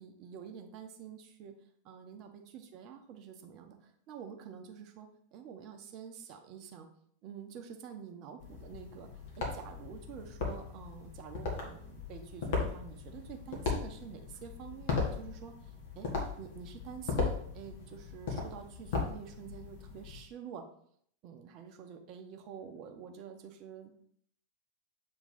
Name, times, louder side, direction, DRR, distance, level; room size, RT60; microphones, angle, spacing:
voice 1, 0.0-1.6 1.8-6.9 7.2-9.1 9.4-16.1 16.4-20.7 21.2-23.9, right 7 dB, 40° right, 4 dB, 0.9 m, -48 dB
sound 1, 8.4-20.2, left 4 dB, 55° left, 1.6 m, -38 dB
7.5 x 3.2 x 4.0 m, 0.63 s
figure-of-eight pair, 90°, 0 cm